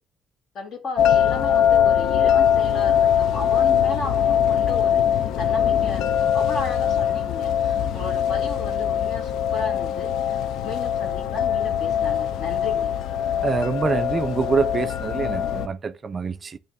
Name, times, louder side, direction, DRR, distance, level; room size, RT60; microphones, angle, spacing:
voice 1, 0.5-5.0 5.4-12.9, left 3 dB, 45° left, 1.5 m, -34 dB
sound 1, 1.0-15.7, left 9 dB, 85° left, 0.5 m, -22 dB
voice 2, 13.4-16.6, right 5 dB, 25° right, 0.4 m, -25 dB
8.9 x 3.0 x 3.5 m
cardioid pair, 180°, 0 cm